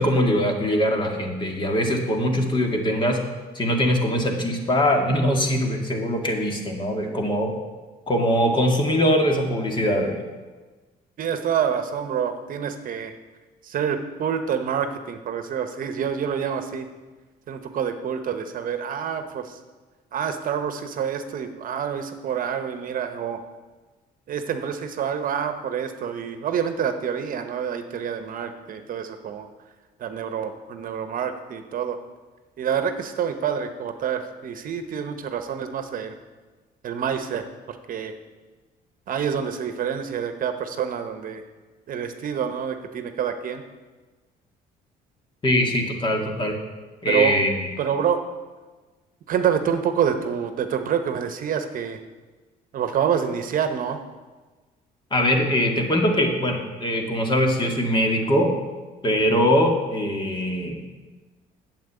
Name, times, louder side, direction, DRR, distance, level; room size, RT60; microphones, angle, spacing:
voice 1, 0.0-3.2 3.5-7.5 8.1-10.2 45.4-46.5 47.0-47.7 55.1-58.5 59.0-60.8, equal, 30° left, 2 dB, 2.2 m, -22 dB
voice 2, 11.2-13.1 13.6-16.9 17.5-19.6 20.1-23.4 24.3-29.5 30.0-32.0 32.6-36.1 36.8-38.1 39.1-41.4 41.9-43.6 47.1-47.4 47.8-48.2 49.3-52.0 52.7-54.0, right 8 dB, 55° right, 8 dB, 1.0 m, -27 dB
9.4 x 7.5 x 8.5 m, 1.3 s
cardioid pair, 110°, 17 cm